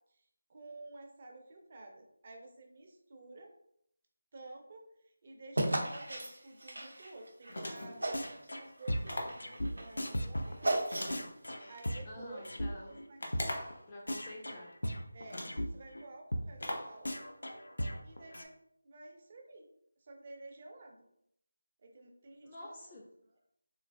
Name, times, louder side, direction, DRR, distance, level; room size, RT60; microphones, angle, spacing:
voice 1, 0.1-3.5 4.3-4.8 5.2-10.8 11.7-12.5 12.9-13.8 15.1-15.4 15.7-17.1 18.0-18.5 18.8-19.7 20.0-21.0 21.8-22.8, right 2 dB, 35° right, 2 dB, 0.5 m, -52 dB
sound 1, 5.6-7.6 8.0-8.5 8.8-11.4, right 1 dB, 85° right, 0.6 m, -35 dB
sound 2, 7.5-8.1 9.1-9.5 10.9-11.9 13.2-13.8 14.7-14.8 15.3-15.7 16.6-17.0, left 1 dB, 70° left, 0.8 m, -40 dB
sound 3, 8.1-8.6 8.9-12.7 13.0-13.1 13.3-13.4 13.7-13.8 14.1-15.7 15.9-16.0 16.3-16.4 16.7-16.8 17.0-18.4, equal, 90° left, 0.5 m, -37 dB
voice 2, 12.0-13.0 13.9-14.7 22.4-23.1, left 1 dB, 20° left, -2 dB, 0.3 m, -48 dB
3.8 x 2.4 x 2.3 m, 0.72 s
figure-of-eight pair, 170°, 0 cm